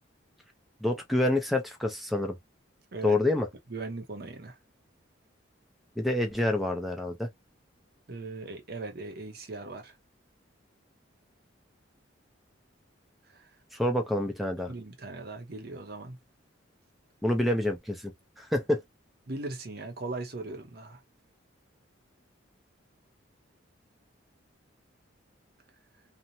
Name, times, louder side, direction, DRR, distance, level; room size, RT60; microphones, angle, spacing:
voice 1, 0.8-2.4 3.0-3.5 6.0-7.3 13.7-14.7 17.2-18.1 18.4-18.8, left 1 dB, ahead, 0.5 m, -27 dB
voice 2, 3.7-4.6 8.1-9.9 13.3-13.5 14.7-16.2 19.3-21.0, right 2 dB, 50° right, 0.7 m, -39 dB
2.6 x 2.1 x 2.8 m
head